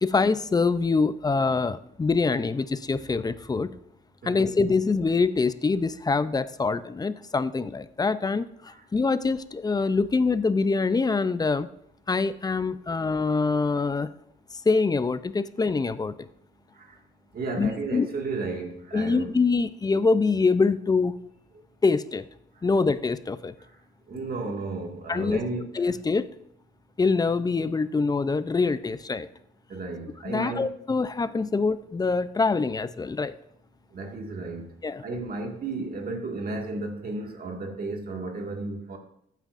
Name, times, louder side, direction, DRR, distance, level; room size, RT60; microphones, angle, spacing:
voice 1, 0.0-3.7 4.2-11.7 12.1-14.1 14.5-16.3 17.6-18.1 18.9-21.1 21.8-22.2 22.6-23.5 25.1-25.4 25.7-26.3 27.0-29.3 30.2-33.3 34.8-35.0, left 4 dB, 20° left, 14 dB, 0.5 m, -24 dB
voice 2, 17.3-19.3 23.6-23.7 24.1-25.7 29.7-30.7 33.9-34.7 35.0-39.0, right 3 dB, 50° right, 2 dB, 2.0 m, -33 dB
15.0 x 9.1 x 2.6 m, 0.70 s
cardioid pair, 90°, 20 cm